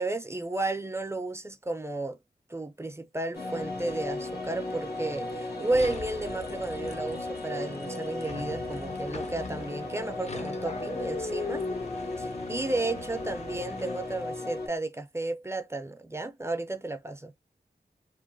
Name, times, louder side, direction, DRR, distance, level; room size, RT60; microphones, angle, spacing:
voice 1, 0.0-2.2 2.5-11.6 12.2-17.3, right 2 dB, 15° right, 0.4 m, -33 dB
sound 1, 3.3-14.7, left 2 dB, 80° left, 1.5 m, -36 dB
sound 2, 5.7-14.4, left 4 dB, 45° left, 0.5 m, -40 dB
2.9 x 2.1 x 2.6 m
wide cardioid pair, 105°, 16 cm